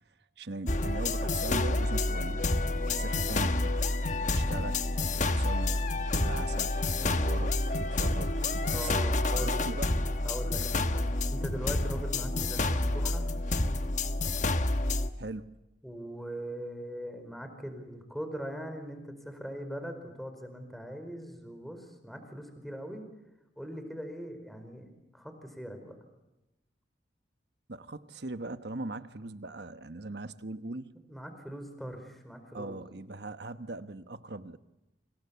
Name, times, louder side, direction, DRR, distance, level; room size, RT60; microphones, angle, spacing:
voice 1, 0.4-2.5 2.9-3.8 4.3-4.9 5.3-9.9 15.2-15.5 27.7-30.9 32.5-34.6, right 2 dB, 65° right, 1.2 m, -40 dB
sound 1, 0.7-15.1, left 2 dB, 45° left, 1.3 m, -29 dB
voice 2, 8.7-9.9 10.2-13.3 15.8-23.0 23.6-26.0 31.1-32.8, equal, ahead, 4.7 m, -41 dB
29.0 x 27.0 x 7.1 m
head